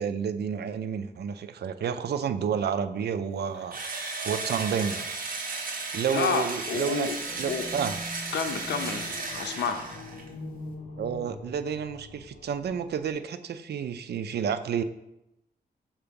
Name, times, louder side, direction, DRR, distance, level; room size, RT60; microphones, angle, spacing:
voice 1, 0.0-3.8 4.2-5.1 5.9-7.1 7.3-8.0 11.0-14.8, right 7 dB, 70° right, 11 dB, 0.5 m, -30 dB
Engine / Drill, 3.7-10.3, right 3 dB, 55° right, 1.2 m, -35 dB
voice 2, 6.1-7.2 7.5-7.7 8.3-9.8, left 6 dB, 85° left, 5 dB, 0.6 m, -30 dB
sound 1, 7.1-13.1, left 2 dB, 55° left, 1.1 m, -43 dB
5.8 x 4.7 x 5.2 m, 0.88 s
wide cardioid pair, 110°, 17 cm